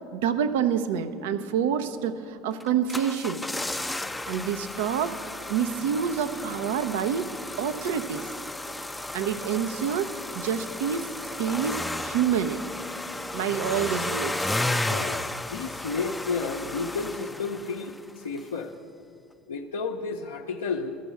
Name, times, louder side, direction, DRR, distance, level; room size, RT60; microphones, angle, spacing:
voice 1, 0.1-3.4 4.3-5.2 5.5-7.3 7.6-8.2 9.1-11.1 11.4-12.6 13.3-14.5, right 8 dB, 75° right, 10 dB, 0.5 m, -27 dB
sound 1, 2.6-18.1 18.4-18.5, left 1 dB, 10° left, 0.4 m, -33 dB
voice 2, 14.8-18.7 19.5-21.0, left 4 dB, 85° left, -1 dB, 0.5 m, -32 dB
12.5 x 6.1 x 8.1 m, 2.4 s
hypercardioid pair, 75°, 0 cm